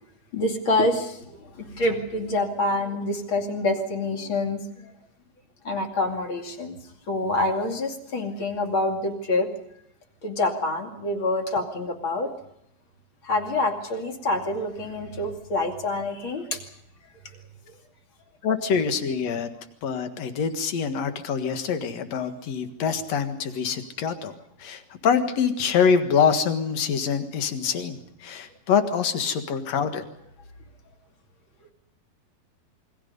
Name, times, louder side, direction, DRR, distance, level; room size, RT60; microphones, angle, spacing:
voice 1, 0.3-4.6 5.6-6.8 7.1-9.5 10.2-12.3 13.2-16.6, left 2 dB, 35° left, 4 dB, 2.6 m, -26 dB
voice 2, 18.4-19.5 19.8-24.3 24.6-30.0, left 6 dB, 55° left, 7 dB, 2.2 m, -25 dB
28.0 x 23.5 x 5.4 m, 0.77 s
omnidirectional pair, 4.8 m